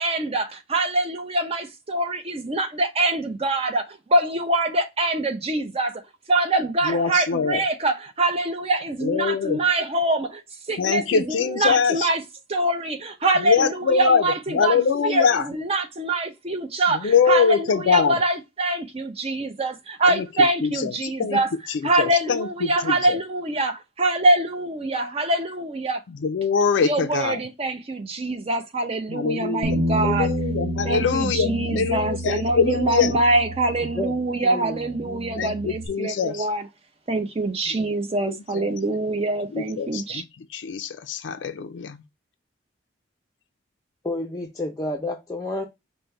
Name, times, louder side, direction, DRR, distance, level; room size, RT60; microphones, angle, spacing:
voice 1, 0.0-6.0 6.3-10.4 10.7-12.2 12.5-21.6 21.8-26.0 26.8-30.3 30.8-36.7 37.1-40.2, right 2 dB, 35° right, 0.6 m, -24 dB
voice 2, 6.8-7.6 9.0-9.6 10.8-12.1 13.4-15.5 16.9-18.2 20.1-20.2 20.6-20.9 21.2-21.4 21.7-23.2 26.2-27.4 29.1-33.2 35.3-36.5 38.2-38.8 39.5-40.2 40.5-42.0, left 6 dB, 80° left, 0.4 m, -23 dB
Bass guitar, 29.6-34.4 34.7-35.9, right 1 dB, 70° right, 0.7 m, -30 dB
voice 3, 34.4-35.4 44.0-45.7, left 1 dB, 20° left, 0.5 m, -30 dB
5.1 x 2.1 x 4.3 m
head